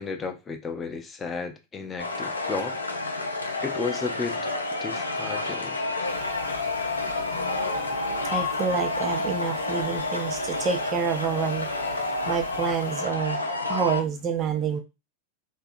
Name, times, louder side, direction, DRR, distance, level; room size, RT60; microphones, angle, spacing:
voice 1, 0.0-2.8 3.6-4.4 4.8-5.8, left 4 dB, 20° left, 0.5 m, -33 dB
sound 1, 2.0-14.0, left 3 dB, 80° left, 0.4 m, -29 dB
sound 2, 6.1-12.9, right 2 dB, 75° right, 0.7 m, -41 dB
voice 2, 8.3-11.7 11.9-13.4 13.7-14.8, right 6 dB, 30° right, 0.6 m, -28 dB
2.7 x 2.2 x 2.5 m
figure-of-eight pair, 90°, 0 cm